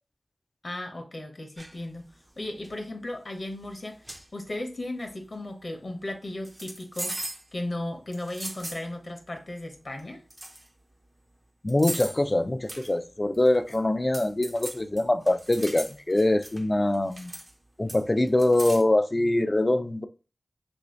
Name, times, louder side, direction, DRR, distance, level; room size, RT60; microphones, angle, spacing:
voice 1, 0.6-4.0 4.3-7.1 7.5-10.2, left 1 dB, 50° left, 0.7 m, -36 dB
sound 1, 1.6-1.8 2.4-2.7 3.6-3.7 4.1-4.3 6.4-7.5 8.1-8.9 10.0-10.1 10.3-10.7 11.7-12.2 12.7-12.9 13.3-13.8 14.1-16.6 16.9-17.5 17.9-18.8, right 1 dB, 25° right, 0.5 m, -38 dB
voice 2, 11.6-17.3 17.8-20.1, left 1 dB, 30° left, 0.3 m, -24 dB
3.1 x 2.6 x 3.1 m
wide cardioid pair, 55°, 0 cm